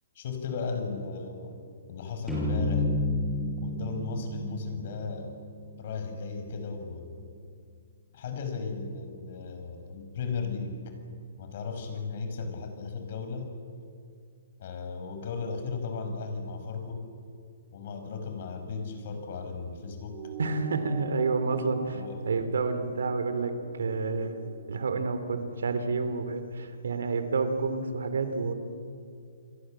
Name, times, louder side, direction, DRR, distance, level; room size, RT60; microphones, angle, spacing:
voice 1, 0.2-1.6 1.9-2.9 3.6-5.4 5.8-7.2 8.1-10.8 11.4-13.5 14.6-17.0 17.7-20.2 21.9-22.3, left 4 dB, 50° left, 6 dB, 5.4 m, -36 dB
sound 1, 2.3-5.8, left 1 dB, ahead, 7.1 m, -31 dB
sound 2, 20.1-24.9, right 4 dB, 25° right, 3.9 m, -43 dB
voice 2, 20.4-24.4 24.7-28.5, right 4 dB, 85° right, 10 dB, 3.1 m, -29 dB
28.5 x 22.0 x 7.7 m, 2.3 s
hypercardioid pair, 155°, 0 cm